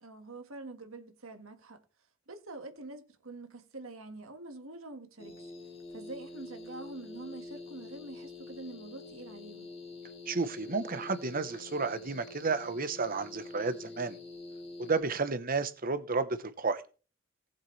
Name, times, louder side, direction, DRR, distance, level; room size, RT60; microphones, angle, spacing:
voice 1, 0.0-1.8 2.3-5.5 5.9-9.7, right 2 dB, 85° right, 1.8 m, -46 dB
sound 1, 5.2-15.0, left 3 dB, 30° left, 2.1 m, -46 dB
voice 2, 10.3-14.2 14.8-16.8, right 4 dB, 45° right, 1.1 m, -32 dB
18.5 x 7.3 x 3.3 m
head